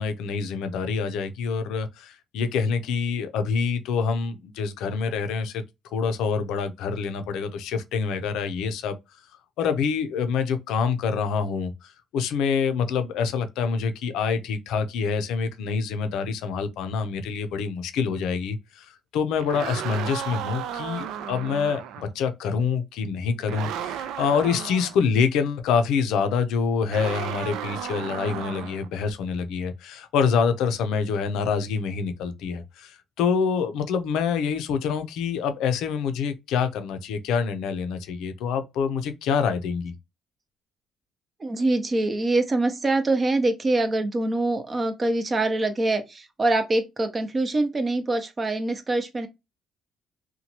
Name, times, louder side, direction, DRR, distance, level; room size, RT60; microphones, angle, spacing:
voice 1, 0.0-5.6 5.9-9.0 9.6-18.9 19.1-39.9, left 6 dB, 85° left, 0.5 m, -26 dB
sound 1, 19.3-22.1 23.5-25.0 26.9-28.9, right 9 dB, 85° right, 0.3 m, -34 dB
voice 2, 41.4-49.3, right 2 dB, 25° right, 0.6 m, -24 dB
2.9 x 2.2 x 2.8 m
cardioid pair, 125°, 0 cm